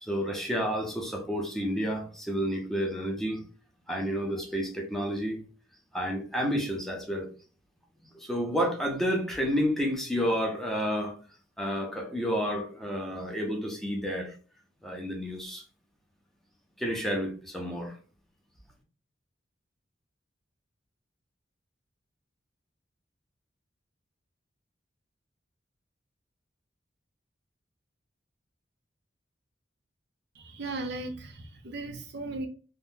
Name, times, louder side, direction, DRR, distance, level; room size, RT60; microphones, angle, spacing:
voice 1, 0.0-3.4 3.9-5.4 5.9-7.3 8.1-11.2 11.6-14.3 14.8-15.6 16.8-17.9, equal, ahead, 0.7 m, -30 dB
voice 2, 30.3-32.5, right 2 dB, 65° right, 0.6 m, -37 dB
3.5 x 2.1 x 2.7 m
head